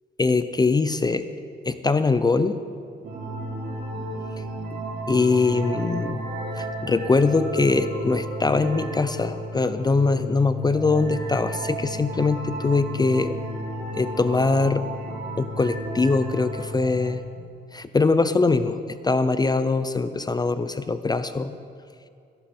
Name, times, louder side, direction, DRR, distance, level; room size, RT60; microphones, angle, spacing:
voice 1, 0.2-1.3 1.6-2.6 5.1-6.2 6.6-13.3 13.9-14.8 15.4-17.2 17.7-21.5, left 3 dB, 20° left, 11 dB, 0.5 m, -22 dB
sound 1, 3.0-17.2, right 1 dB, 55° right, 3.5 m, -33 dB
15.0 x 12.5 x 4.4 m, 2.4 s
cardioid pair, 90°, 20 cm